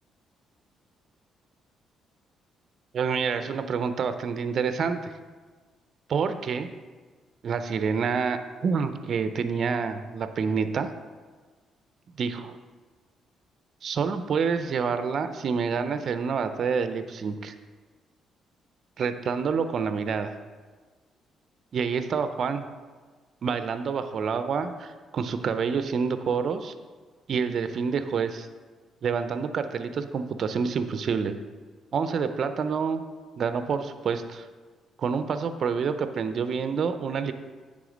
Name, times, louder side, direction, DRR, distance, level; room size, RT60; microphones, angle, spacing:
voice 1, 2.9-5.1 6.1-6.7 7.4-10.9 12.2-12.6 13.8-17.5 19.0-20.3 21.7-22.7 23.4-26.7 27.3-28.5 29.0-31.3 31.9-33.0 33.4-34.5 35.0-37.3, right 5 dB, 55° right, 10 dB, 0.5 m, -27 dB
9.2 x 3.6 x 5.0 m, 1.4 s
cardioid pair, 90°, 0 cm